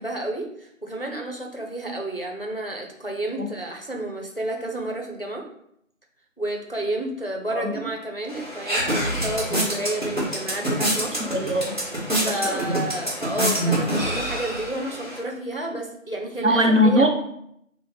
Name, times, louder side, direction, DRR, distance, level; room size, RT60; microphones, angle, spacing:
voice 1, 0.0-5.4 6.4-11.3 12.2-17.0, right 1 dB, 45° left, 2 dB, 0.4 m, -31 dB
sound 1, 8.3-15.2, right 1 dB, 35° right, 1.4 m, -26 dB
voice 2, 11.2-11.8 12.2-12.8 16.4-17.1, equal, 65° right, 3 dB, 0.7 m, -21 dB
3.2 x 2.0 x 4.2 m, 0.74 s
figure-of-eight pair, 175°, 40 cm